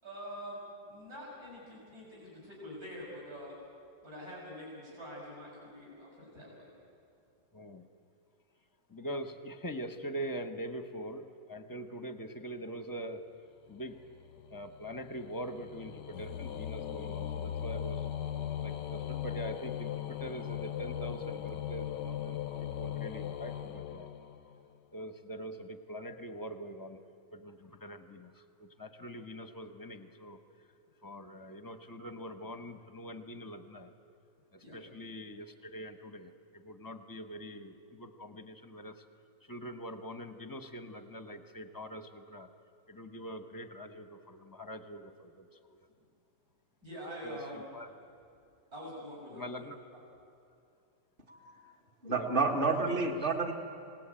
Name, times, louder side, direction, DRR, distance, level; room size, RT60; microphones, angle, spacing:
voice 1, 0.0-3.6 4.0-6.7 34.6-34.8 46.8-47.6 48.7-49.6 49.9-50.0, equal, 60° right, -5 dB, 6.7 m, -45 dB
voice 2, 8.9-13.2 13.7-14.0 14.5-18.0 18.6-24.1 24.9-27.0 27.3-28.3 28.6-30.4 31.0-33.9 34.7-39.0 39.5-42.5 42.9-45.4 45.7-45.8 47.2-47.4 47.7-47.9 49.3-49.8 52.1-52.5 52.9-53.1, equal, 15° left, 9 dB, 1.0 m, -43 dB
sound 1, 13.8-24.8, left 10 dB, 85° left, 1.4 m, -39 dB
voice 3, 51.3-51.6 52.0-53.5, right 3 dB, 30° right, 3 dB, 2.0 m, -30 dB
27.5 x 18.5 x 8.9 m, 2.6 s
omnidirectional pair, 1.8 m